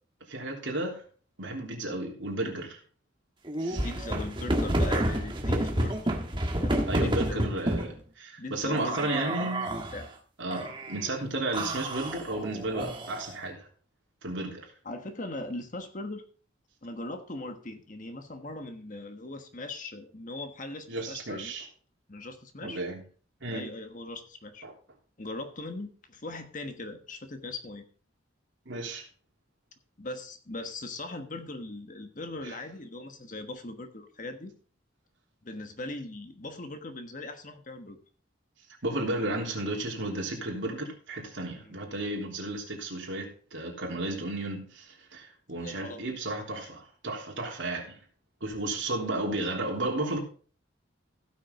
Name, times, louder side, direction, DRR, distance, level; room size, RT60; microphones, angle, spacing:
voice 1, 0.2-1.0 1.4-2.8 3.6-3.9 6.9-9.8 10.4-13.7 14.2-14.6 20.9-21.7 22.6-23.0 23.4-23.7 24.6-24.7 28.6-29.0 38.8-48.0 48.4-50.2, right 2 dB, 75° right, 3.3 m, -33 dB
sound 1, 3.5-7.9 8.7-10.0 10.5-11.1 11.5-13.4, right 1 dB, 25° right, 1.4 m, -30 dB
voice 2, 3.7-5.9 6.6-7.5 8.4-9.5 9.9-10.1 14.8-16.2 16.8-21.5 22.1-22.8 23.5-24.7 25.2-27.9 30.0-34.5 35.4-38.0 41.6-41.7 45.6-46.2, left 2 dB, 40° left, 1.3 m, -40 dB
16.0 x 6.4 x 3.7 m
head